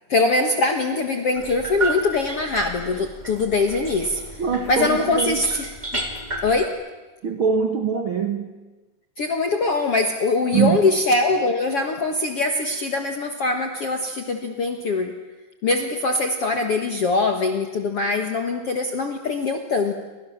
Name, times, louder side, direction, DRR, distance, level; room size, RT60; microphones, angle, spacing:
voice 1, 0.1-4.2 4.7-5.7 5.9-6.0 6.4-6.7 9.2-15.1 15.6-19.9, left 3 dB, 60° left, 5 dB, 1.6 m, -22 dB
sound 1, 1.4-6.7, right 2 dB, 15° right, 1.5 m, -32 dB
voice 2, 4.4-5.4 7.2-8.5 10.5-10.8, right 7 dB, 65° right, 6 dB, 1.3 m, -23 dB
29.5 x 25.0 x 7.3 m, 1.2 s
omnidirectional pair, 4.9 m